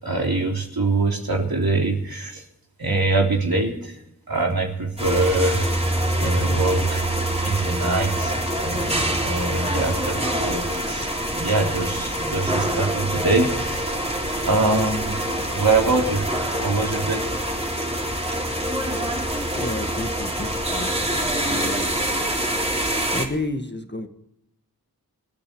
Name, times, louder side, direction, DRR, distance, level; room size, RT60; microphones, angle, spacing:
voice 1, 0.0-2.4 2.8-4.0 4.3-5.7 6.2-7.1 7.4-8.4 8.6-14.0 14.4-15.2 15.5-16.3 16.6-17.3, right 3 dB, 70° right, 0 dB, 3.7 m, -24 dB
sound 1, 5.0-23.3, right 1 dB, 15° right, 3.5 m, -25 dB
voice 2, 19.6-20.9 21.4-21.9 23.1-24.1, left 2 dB, 30° left, 7 dB, 1.8 m, -31 dB
27.0 x 9.8 x 4.7 m, 0.82 s
wide cardioid pair, 40°, 38 cm